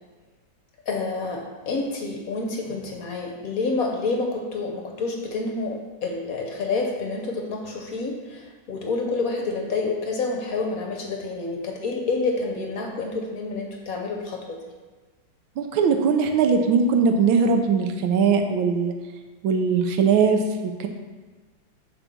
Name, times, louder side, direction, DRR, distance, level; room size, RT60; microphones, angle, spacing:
voice 1, 0.9-14.6, left 3 dB, 55° left, 1 dB, 1.2 m, -28 dB
voice 2, 15.6-18.9 19.4-20.9, right 5 dB, 85° right, 5 dB, 1.6 m, -20 dB
7.8 x 4.1 x 6.1 m, 1.3 s
omnidirectional pair, 2.1 m